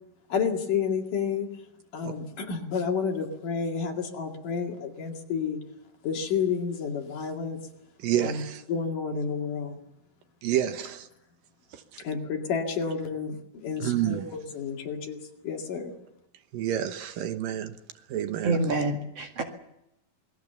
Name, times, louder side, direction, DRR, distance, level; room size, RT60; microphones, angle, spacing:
voice 1, 0.3-1.5 1.9-5.6 6.0-7.6 8.2-8.4 8.7-9.8 12.0-15.2 15.4-15.9, left 6 dB, 65° left, 3.8 m, -30 dB
voice 2, 8.0-8.6 10.4-11.1 11.7-11.8 13.8-14.3 16.5-17.8 18.1-18.6, right 11 dB, 80° right, 2.9 m, -29 dB
voice 3, 18.4-19.4, right 2 dB, 50° right, 2.8 m, -27 dB
27.5 x 20.5 x 7.0 m
omnidirectional pair, 4.0 m